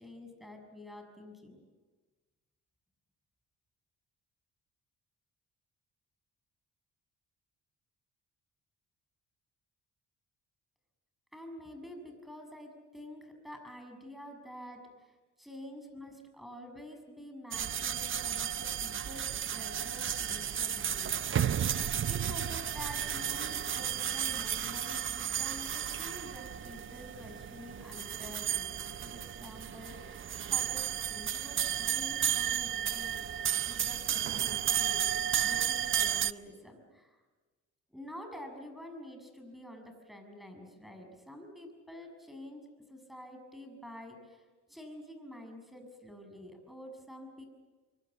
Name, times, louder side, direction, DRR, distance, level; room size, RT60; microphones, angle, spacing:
voice 1, 0.0-1.6 11.3-21.6 22.0-30.8 31.1-33.3 33.7-37.2 37.9-44.4 44.7-47.5, left 1 dB, ahead, 5 dB, 6.5 m, -48 dB
sound 1, 17.5-36.3, right 9 dB, 40° right, 0.7 m, -33 dB
25.5 x 24.0 x 7.3 m, 1.3 s
cardioid pair, 90°, 30 cm